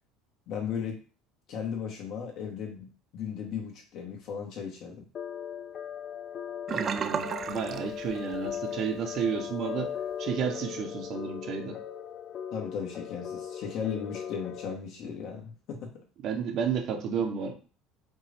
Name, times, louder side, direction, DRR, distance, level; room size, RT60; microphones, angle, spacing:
voice 1, 0.5-1.0 1.5-5.0 12.5-16.1, left 7 dB, 60° left, 0 dB, 1.7 m, -36 dB
sound 1, 5.1-14.7, left 8 dB, 45° left, 0.4 m, -38 dB
Sink (filling or washing), 6.7-8.7 9.0-9.3 9.7-9.8, right 7 dB, 35° right, 0.3 m, -33 dB
voice 2, 6.7-9.9 10.2-11.8 16.2-17.5, right 7 dB, 55° right, 3 dB, 1.1 m, -32 dB
5.2 x 2.7 x 3.5 m, 0.37 s
supercardioid pair, 110°, 0 cm